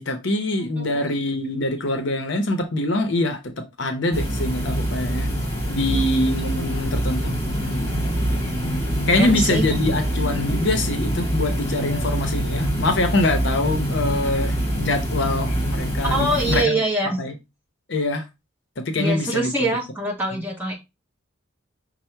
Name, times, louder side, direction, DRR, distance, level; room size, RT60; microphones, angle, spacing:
voice 1, 0.0-5.3 5.7-7.3 7.6-7.9 9.1-16.8 17.2-17.3 17.9-18.3 18.8-19.7 20.3-20.4, left 2 dB, 55° left, 0.7 m, -24 dB
sound 1, 4.1-16.6, equal, 30° left, 1.3 m, -25 dB
voice 2, 9.1-9.6 16.1-17.2 19.0-20.8, right 1 dB, 10° right, 1.2 m, -24 dB
5.4 x 2.1 x 4.4 m
head